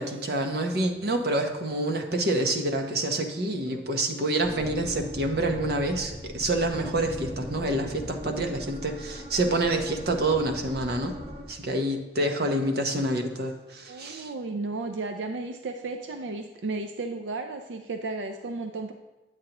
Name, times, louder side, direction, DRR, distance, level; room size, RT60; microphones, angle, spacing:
voice 1, 0.0-11.1 11.5-14.3, right 1 dB, 60° right, 5 dB, 0.9 m, -27 dB
sound 1, 4.4-11.4, equal, 35° right, 1.3 m, -39 dB
voice 2, 13.9-18.9, right 3 dB, 85° right, 6 dB, 0.5 m, -34 dB
9.0 x 8.2 x 2.9 m, 1.1 s
head